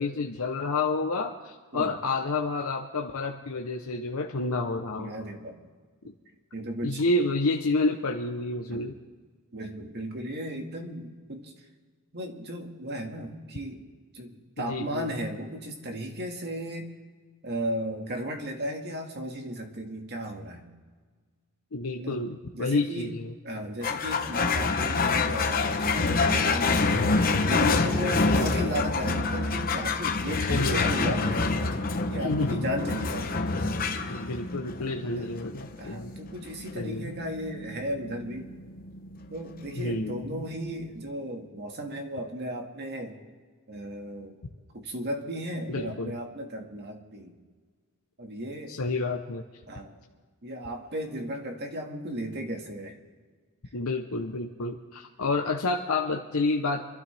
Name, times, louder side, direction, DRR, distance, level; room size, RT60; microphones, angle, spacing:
voice 1, 0.0-5.1 6.8-9.0 14.7-15.1 21.7-23.3 28.2-28.7 30.5-30.9 32.2-32.7 34.1-36.1 36.7-37.1 39.8-40.4 45.7-46.2 48.7-49.4 53.7-56.9, left 3 dB, 75° left, 2 dB, 0.9 m, -29 dB
voice 2, 5.0-5.6 6.5-7.0 8.7-8.8 9.5-11.5 12.1-13.9 14.1-16.9 17.4-20.6 22.0-22.2 22.5-23.2 23.4-27.0 27.3-31.6 32.1-33.3 35.1-35.3 35.8-38.5 39.3-43.2 43.7-44.4 44.7-47.3 48.2-48.8 49.7-50.0 50.4-53.0, equal, 50° right, 3 dB, 1.9 m, -35 dB
sound 1, 23.8-40.6, left 3 dB, 40° left, 1.0 m, -27 dB
26.0 x 12.5 x 3.4 m, 1.5 s
head